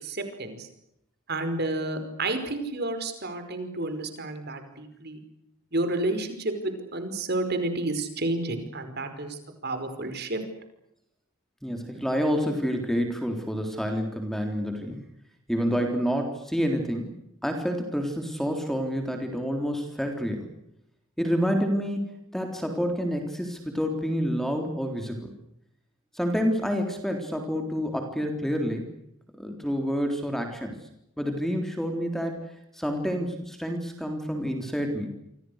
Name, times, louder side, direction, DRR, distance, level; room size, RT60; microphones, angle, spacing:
voice 1, 0.0-0.7 1.3-5.2 5.7-10.4, right 2 dB, 50° right, 8 dB, 5.1 m, -30 dB
voice 2, 11.6-15.0 15.5-17.1 17.4-20.5 21.2-25.3 26.1-28.9 29.4-30.8 31.2-35.1, equal, ahead, 4 dB, 3.6 m, -28 dB
29.0 x 25.5 x 6.6 m, 0.80 s
head